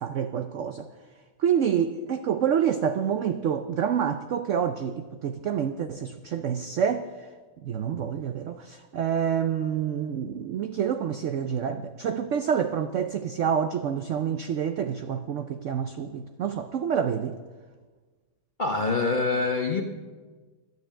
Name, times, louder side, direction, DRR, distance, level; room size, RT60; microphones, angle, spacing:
voice 1, 0.0-0.9 1.4-7.1 7.6-17.4, right 8 dB, 85° right, 9 dB, 0.6 m, -27 dB
voice 2, 18.6-19.8, left 3 dB, 45° left, 3 dB, 0.6 m, -25 dB
12.0 x 9.5 x 7.4 m, 1.4 s
omnidirectional pair, 2.0 m